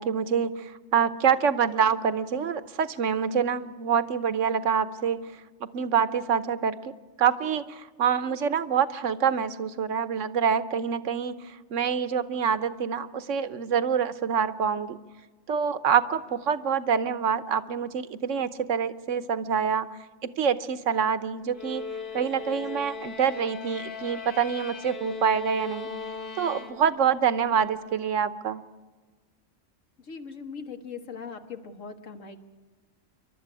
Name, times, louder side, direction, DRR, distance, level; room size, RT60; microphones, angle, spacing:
voice 1, 0.0-5.3 5.7-6.9 7.2-11.4 11.7-15.0 15.5-19.9 20.2-21.8 22.1-25.9 26.4-28.6, right 7 dB, 75° right, 14 dB, 1.3 m, -26 dB
sound 1, 21.5-27.2, left 4 dB, 45° left, 1.3 m, -38 dB
voice 2, 30.1-32.4, left 5 dB, 80° left, 6 dB, 1.9 m, -40 dB
28.0 x 12.0 x 9.8 m, 1.3 s
omnidirectional pair, 1.3 m